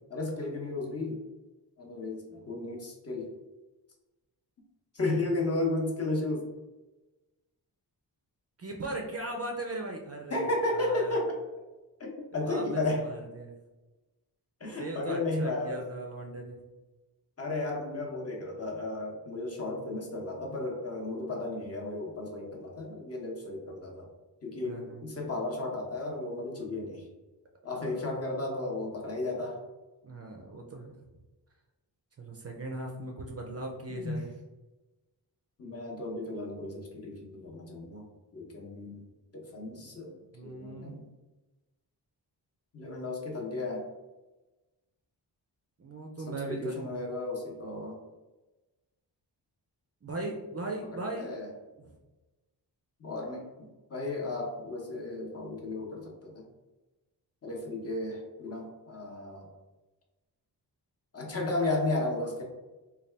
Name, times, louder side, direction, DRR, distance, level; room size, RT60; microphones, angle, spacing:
voice 1, 0.1-1.2 1.8-3.3 4.9-6.5 10.3-11.4 12.0-13.0 14.6-15.8 17.4-24.1 24.4-27.1 27.6-29.6 33.9-34.2 35.6-38.1 38.3-39.0 39.3-40.2 40.4-41.0 42.7-43.9 46.1-48.0 50.9-51.5 53.0-56.4 57.4-59.5 61.1-62.4, left 2 dB, 35° left, 0 dB, 0.8 m, -34 dB
voice 2, 8.6-11.2 12.4-13.5 14.8-16.6 24.6-25.0 27.7-27.9 30.0-30.9 32.2-34.3 39.6-39.8 40.3-41.0 45.8-46.9 50.0-51.4 51.7-51.8, right 2 dB, 35° right, 1 dB, 0.4 m, -38 dB
4.0 x 2.3 x 3.2 m, 1.1 s
wide cardioid pair, 180°, 42 cm